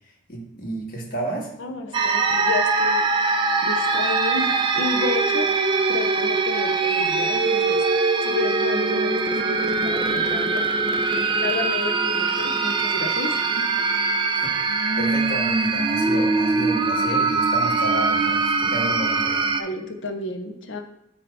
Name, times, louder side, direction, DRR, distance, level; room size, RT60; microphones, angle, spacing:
voice 1, 0.3-1.5 14.3-14.6 15.0-19.5, right 1 dB, 50° left, -1 dB, 1.5 m, -31 dB
voice 2, 1.6-3.3 3.6-5.5 5.9-7.8 8.2-10.7 11.4-13.3 19.6-20.8, left 3 dB, 75° left, 5 dB, 0.7 m, -31 dB
sound 1, 1.9-19.6, right 3 dB, 25° right, 0.4 m, -22 dB
7.5 x 2.8 x 5.5 m, 0.83 s
head